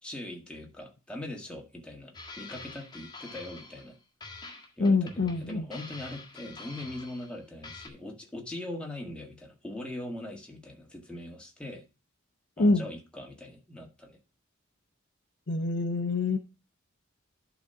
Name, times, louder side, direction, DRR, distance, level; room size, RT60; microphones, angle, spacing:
voice 1, 0.0-4.0 4.8-11.8 12.6-14.2, left 1 dB, 5° left, 0 dB, 1.7 m, -41 dB
sound 1, 2.1-3.9 4.2-7.4 7.6-7.9, left 3 dB, 20° left, 1.7 m, -46 dB
voice 2, 4.8-5.7 12.6-12.9 15.5-16.4, left 3 dB, 55° left, 7 dB, 0.8 m, -25 dB
11.0 x 4.1 x 5.7 m, 0.31 s
head